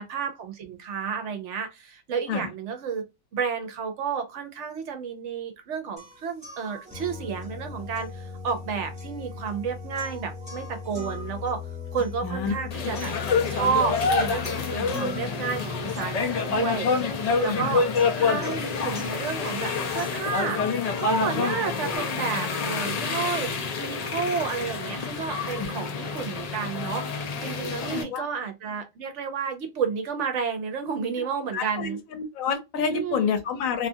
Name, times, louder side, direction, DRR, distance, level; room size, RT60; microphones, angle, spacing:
voice 1, 0.0-3.0 3.3-11.6 11.9-13.1 13.5-17.8 18.2-23.5 23.8-32.0 32.8-33.3, right 6 dB, 65° right, 1.0 m, -31 dB
sound 1, 6.0-22.0, left 5 dB, 5° right, 1.0 m, -39 dB
voice 2, 12.2-12.5 13.0-13.1 17.4-17.8 25.1-25.2 25.6-25.7 27.6-28.3 31.2-31.3 31.5-33.9, left 6 dB, 85° left, 1.1 m, -29 dB
sound 2, 12.7-28.0, left 5 dB, 70° left, 0.3 m, -28 dB
2.7 x 2.4 x 2.6 m
omnidirectional pair, 1.4 m